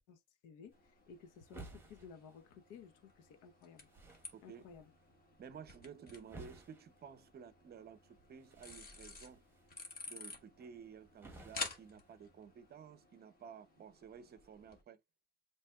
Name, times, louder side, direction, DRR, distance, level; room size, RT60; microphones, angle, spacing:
voice 1, 0.1-0.7 1.1-3.9 4.4-4.9, left 6 dB, 75° left, 0.9 m, -56 dB
sound 1, 0.7-14.8, left 3 dB, 30° left, 1.4 m, -52 dB
sound 2, 0.7-12.7, right 2 dB, 5° right, 1.2 m, -59 dB
voice 2, 4.3-4.8 5.4-9.4 10.1-15.0, right 7 dB, 30° right, 0.6 m, -54 dB
7.3 x 3.0 x 2.3 m
cardioid pair, 140°, 31 cm